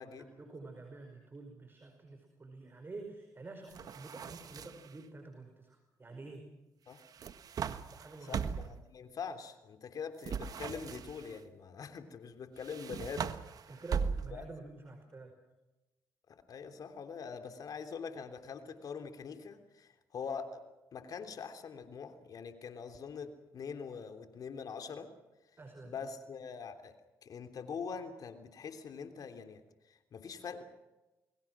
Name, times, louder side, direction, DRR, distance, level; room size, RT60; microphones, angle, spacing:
voice 1, 0.0-6.4 7.9-8.5 13.7-15.3 25.6-25.9, right 3 dB, 30° right, 4 dB, 5.0 m, -49 dB
sound 1, 3.7-5.0 7.0-8.8 10.2-11.4 12.6-14.5, right 6 dB, 60° right, 1.5 m, -39 dB
voice 2, 8.3-13.3 14.3-14.4 16.3-20.5 20.9-25.1 25.8-26.9 27.2-29.6 29.9-30.6, left 6 dB, 60° left, 8 dB, 3.2 m, -43 dB
29.5 x 21.0 x 6.1 m, 1.1 s
supercardioid pair, 65°, 7 cm